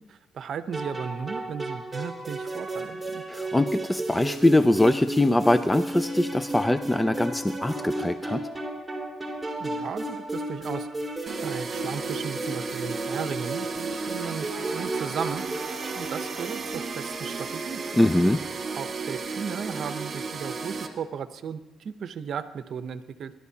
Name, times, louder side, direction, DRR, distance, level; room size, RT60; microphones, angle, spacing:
voice 1, 0.0-3.2 9.6-11.1 11.4-17.8 18.7-23.3, right 7 dB, 60° right, 11 dB, 0.8 m, -36 dB
sound 1, 0.7-16.7, right 1 dB, 5° right, 3.2 m, -33 dB
voice 2, 3.3-8.5 18.0-18.4, left 1 dB, 10° left, 12 dB, 0.4 m, -22 dB
sound 2, 11.3-20.9, right 4 dB, 40° right, 1.8 m, -34 dB
23.5 x 12.0 x 2.8 m, 1.1 s
cardioid pair, 90°, 0 cm